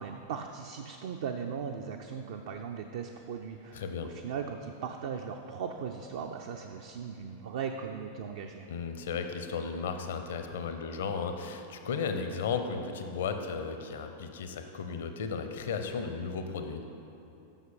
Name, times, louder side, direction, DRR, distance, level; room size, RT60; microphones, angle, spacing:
voice 1, 0.0-8.7, right 6 dB, 55° right, 4 dB, 0.4 m, -38 dB
voice 2, 3.7-4.1 8.7-16.9, left 5 dB, 60° left, 7 dB, 0.6 m, -35 dB
7.1 x 6.1 x 5.4 m, 3.0 s
figure-of-eight pair, 90°, 0 cm